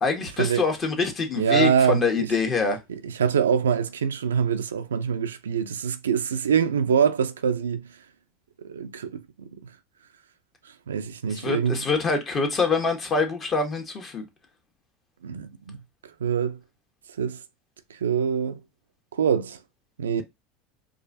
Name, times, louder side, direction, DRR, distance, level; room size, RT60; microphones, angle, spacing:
voice 1, 0.0-2.8 11.3-14.2, left 4 dB, 35° left, 1.3 m, -25 dB
voice 2, 1.4-2.3 2.9-8.0 8.6-9.6 10.9-11.9 15.2-15.8 16.2-16.6 17.2-17.4 17.9-18.6 19.1-19.6 20.0-20.2, right 7 dB, 90° right, 0.4 m, -25 dB
4.6 x 2.4 x 2.6 m
hypercardioid pair, 85°, 0 cm